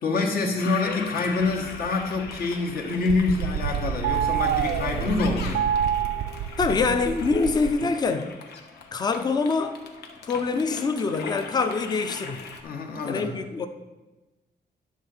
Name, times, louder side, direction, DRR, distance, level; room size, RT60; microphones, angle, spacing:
voice 1, 0.0-5.6 6.7-6.8 12.6-13.3, left 3 dB, 60° left, 1 dB, 1.4 m, -26 dB
Toilet flush, 0.6-12.6, left 4 dB, 80° left, 1.1 m, -39 dB
sound 1, 1.4-2.7 3.0-7.7, right 9 dB, 75° right, 0.4 m, -28 dB
voice 2, 6.6-8.3 8.9-9.8 10.2-12.4 13.0-13.7, left 4 dB, 25° left, 8 dB, 0.5 m, -25 dB
11.0 x 3.8 x 7.1 m, 1.1 s
wide cardioid pair, 180°, 17 cm